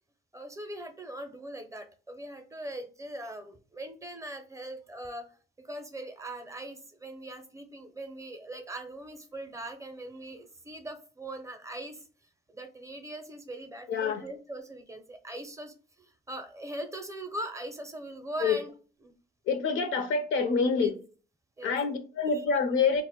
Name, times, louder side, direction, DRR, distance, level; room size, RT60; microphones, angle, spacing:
voice 1, 0.3-12.0 12.5-18.7 19.0-19.1 20.7-20.9 21.6-21.8 22.3-22.5, right 1 dB, 15° right, 0.5 m, -41 dB
voice 2, 13.9-14.2 18.4-18.6 19.5-20.9 21.6-23.0, left 5 dB, 75° left, 0.5 m, -26 dB
2.1 x 2.0 x 3.5 m
cardioid pair, 90°, 20 cm